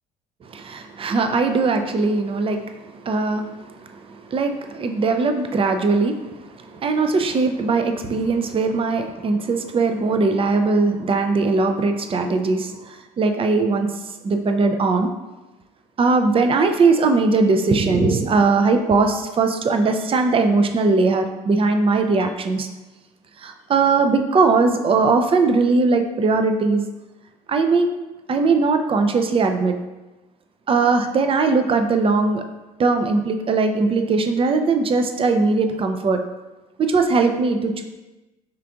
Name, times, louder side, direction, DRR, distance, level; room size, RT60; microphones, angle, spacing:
voice 1, 0.4-13.9 14.2-15.1 16.0-22.7 23.4-26.9 27.5-27.9 28.3-29.7 30.7-32.4 32.8-36.2 36.8-37.8, right 3 dB, 25° right, 6 dB, 0.5 m, -20 dB
4.4 x 3.3 x 2.5 m, 1.1 s
hypercardioid pair, 65°, 20 cm